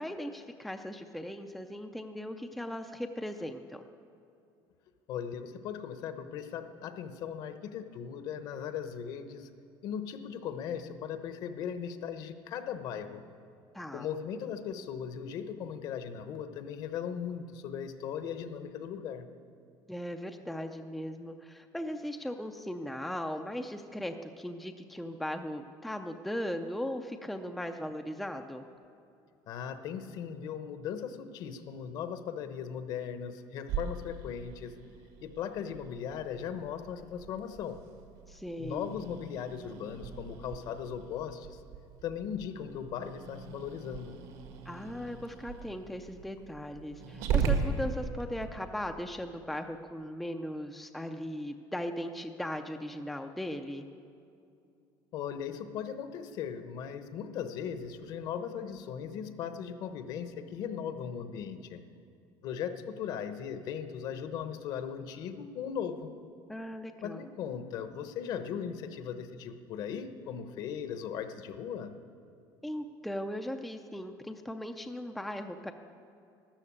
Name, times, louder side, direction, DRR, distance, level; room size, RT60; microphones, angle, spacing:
voice 1, 0.0-3.8 13.7-14.1 19.9-28.6 38.3-38.9 44.7-53.9 66.5-67.2 72.6-75.7, equal, ahead, 5 dB, 0.4 m, -38 dB
voice 2, 5.1-9.5 9.8-13.2 13.9-19.3 29.5-34.7 35.2-37.8 38.6-41.6 42.0-44.2 55.1-61.8 62.4-66.1 67.0-71.9, left 8 dB, 50° left, 9 dB, 0.9 m, -38 dB
Growling, 33.7-48.5, right 5 dB, 70° right, 1.7 m, -38 dB
13.0 x 12.0 x 8.6 m, 2.5 s
cardioid pair, 165°, 9 cm